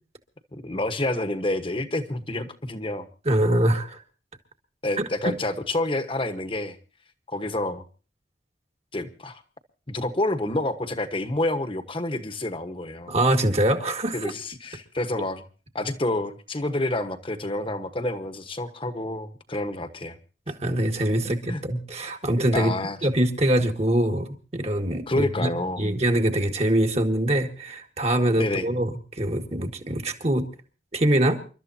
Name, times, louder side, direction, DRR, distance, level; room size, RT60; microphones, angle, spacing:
voice 1, 0.5-3.1 4.8-6.8 7.3-7.8 8.9-9.4 9.9-13.2 14.1-15.4 15.7-20.2 21.2-21.6 22.5-23.0 25.1-25.9 28.4-28.7, left 1 dB, 30° left, 9 dB, 1.3 m, -28 dB
voice 2, 3.2-4.0 5.0-5.3 13.1-14.3 20.5-22.7 23.0-25.5 25.8-30.5 30.9-31.4, right 1 dB, 35° right, 4 dB, 1.8 m, -24 dB
28.5 x 13.0 x 2.8 m, 0.36 s
head